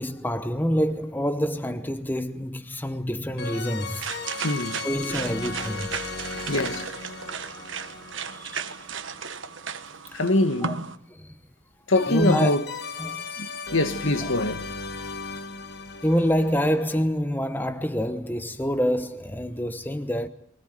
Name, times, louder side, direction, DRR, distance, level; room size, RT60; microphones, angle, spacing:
voice 1, 0.0-4.1 4.8-5.9 8.4-8.6 10.6-10.7 11.1-11.3 12.1-12.6 13.0-13.3 14.3-14.4 16.0-20.3, equal, 10° left, 0.9 m, -26 dB
sound 1, 0.9-1.0 3.4-9.4 11.9-17.0, left 4 dB, 50° left, 1.5 m, -36 dB
sound 2, 3.4-11.0, right 6 dB, 65° right, 1.5 m, -35 dB
voice 2, 4.4-4.8 6.5-6.9 10.1-10.8 11.9-12.6 13.4-14.6, left 2 dB, 65° left, 1.7 m, -24 dB
23.5 x 17.5 x 9.3 m
head